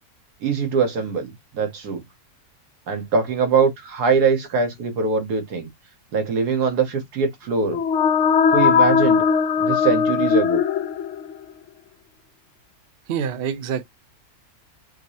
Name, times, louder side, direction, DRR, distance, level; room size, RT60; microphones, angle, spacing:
voice 1, 0.4-2.0 2.9-5.7 6.1-7.8 8.5-9.2 9.6-10.6, right 5 dB, 85° right, 1.6 m, -22 dB
sound 1, 7.6-11.4, left 6 dB, 70° left, 0.7 m, -19 dB
voice 2, 13.1-13.8, right 8 dB, 60° right, 0.6 m, -26 dB
5.9 x 2.0 x 2.6 m
omnidirectional pair, 1.7 m